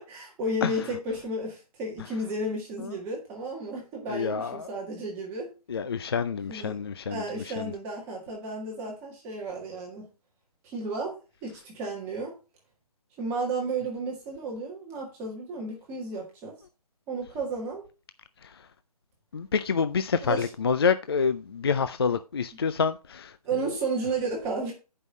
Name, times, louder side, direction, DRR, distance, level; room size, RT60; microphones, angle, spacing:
voice 1, 0.0-5.5 6.5-6.8 7.1-10.1 10.6-11.1 11.4-12.3 13.2-16.5 17.1-17.8 20.2-20.5 23.4-24.7, right 2 dB, 10° right, 1.6 m, -33 dB
voice 2, 4.1-4.7 5.7-7.2 7.6-7.7 19.3-23.3, left 5 dB, 40° left, 0.4 m, -27 dB
8.1 x 5.5 x 5.3 m
hypercardioid pair, 165°, 20 cm